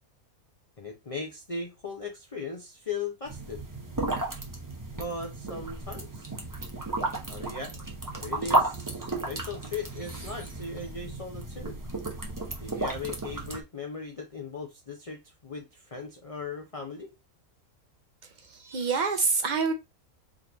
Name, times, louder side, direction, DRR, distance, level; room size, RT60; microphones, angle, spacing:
voice 1, 0.8-3.6 4.9-6.3 7.3-7.8 8.2-11.8 12.6-17.1, left 4 dB, 30° left, 0.7 m, -38 dB
sound 1, 3.2-13.6, right 2 dB, 15° right, 0.8 m, -33 dB
voice 2, 18.4-19.7, right 4 dB, 85° right, 0.4 m, -27 dB
3.8 x 3.1 x 3.9 m
omnidirectional pair, 1.5 m